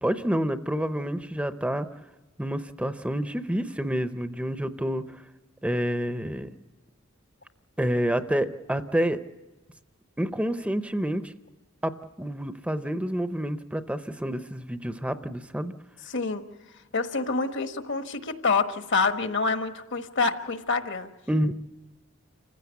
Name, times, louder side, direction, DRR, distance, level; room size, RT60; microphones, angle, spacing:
voice 1, 0.0-1.9 2.4-5.2 5.6-6.5 7.8-9.2 10.2-11.3 11.8-11.9 12.2-15.7 21.3-21.5, equal, 5° right, 11 dB, 0.6 m, -28 dB
voice 2, 16.0-16.4 16.7-21.1, left 4 dB, 60° left, 9 dB, 1.3 m, -27 dB
27.5 x 15.5 x 8.2 m, 1.1 s
head